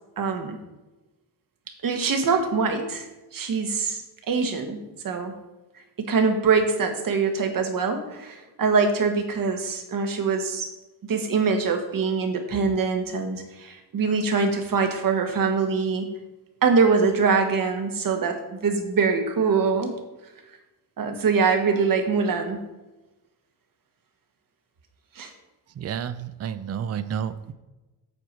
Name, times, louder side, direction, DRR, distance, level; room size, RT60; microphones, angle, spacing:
voice 1, 0.2-0.6 1.8-3.1 3.3-4.0 4.3-5.3 6.0-10.7 11.0-16.1 16.6-19.9 21.0-22.6 25.1-25.3, right 5 dB, 60° right, 5 dB, 1.3 m, -23 dB
voice 2, 25.8-27.5, right 8 dB, 40° right, 13 dB, 0.5 m, -30 dB
8.0 x 4.7 x 7.2 m, 1.1 s
wide cardioid pair, 155°, 39 cm